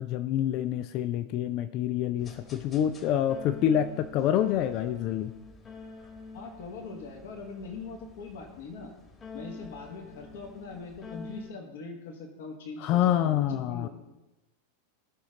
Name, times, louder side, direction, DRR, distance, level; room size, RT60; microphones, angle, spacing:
voice 1, 0.0-5.3 12.8-13.9, left 10 dB, 40° left, 11 dB, 0.4 m, -27 dB
sound 1, 2.2-11.5, left 3 dB, 20° left, 1.5 m, -47 dB
voice 2, 6.3-8.9 9.3-13.9, left 4 dB, 55° left, 2 dB, 1.5 m, -42 dB
15.0 x 6.3 x 3.9 m, 0.99 s
figure-of-eight pair, 90°, 0 cm